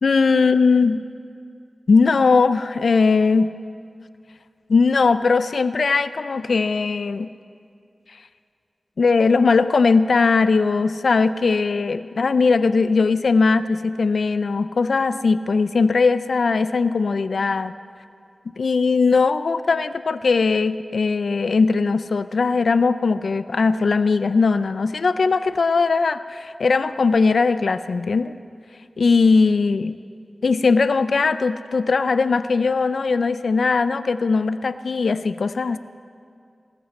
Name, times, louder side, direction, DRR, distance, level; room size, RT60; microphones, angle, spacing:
voice 1, 0.0-1.0 1.9-3.5 4.7-7.3 9.0-17.7 18.6-28.3 29.0-30.0 30.4-35.8, left 4 dB, 75° left, 13 dB, 0.3 m, -19 dB
20.0 x 14.0 x 4.3 m, 2.4 s
wide cardioid pair, 85°, 0 cm